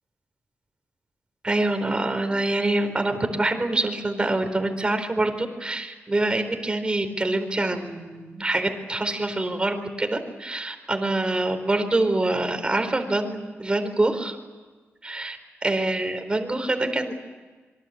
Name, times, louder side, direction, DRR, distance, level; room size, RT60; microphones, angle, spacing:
voice 1, 1.4-14.4 15.0-15.4 15.6-17.1, right 2 dB, 20° right, 7 dB, 4.3 m, -25 dB
27.0 x 24.0 x 8.6 m, 1.3 s
wide cardioid pair, 110°, 5 cm